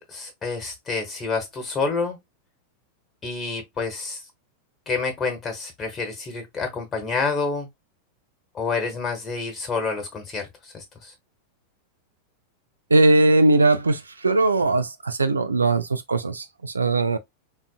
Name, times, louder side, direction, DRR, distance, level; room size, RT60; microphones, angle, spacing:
voice 1, 0.0-2.2 3.2-4.2 4.9-7.7 8.5-11.1, left 4 dB, 20° left, 1.0 m, -28 dB
voice 2, 12.9-17.2, right 2 dB, 75° right, 0.4 m, -20 dB
3.9 x 2.6 x 2.3 m
figure-of-eight pair, 90°, 0 cm